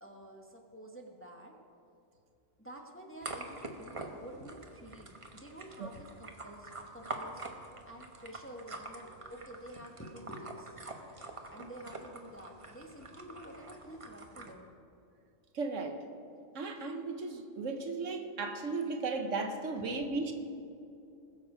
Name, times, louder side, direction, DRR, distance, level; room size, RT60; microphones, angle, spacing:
voice 1, 0.0-1.5 2.6-10.8 11.5-14.7 19.8-20.0, right 1 dB, 10° left, 1 dB, 1.0 m, -49 dB
sound 1, 3.2-14.5, right 2 dB, 25° right, 1.0 m, -46 dB
voice 2, 15.5-16.0 16.5-20.3, right 3 dB, 70° right, 5 dB, 1.3 m, -35 dB
21.0 x 7.2 x 4.9 m, 2.6 s
omnidirectional pair, 1.4 m